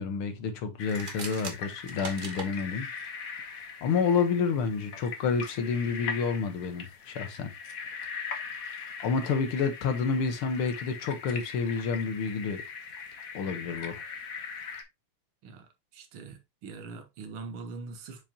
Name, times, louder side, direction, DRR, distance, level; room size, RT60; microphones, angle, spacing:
voice 1, 0.0-2.9 3.8-7.5 9.0-12.6 13.3-14.0, left 5 dB, 75° left, 2.0 m, -29 dB
sound 1, 0.8-14.8, left 6 dB, 50° left, 1.3 m, -41 dB
sound 2, 0.8-2.5, right 4 dB, 40° right, 0.7 m, -40 dB
voice 2, 15.4-18.3, right 4 dB, 80° right, 2.0 m, -43 dB
7.1 x 4.9 x 2.8 m
omnidirectional pair, 2.4 m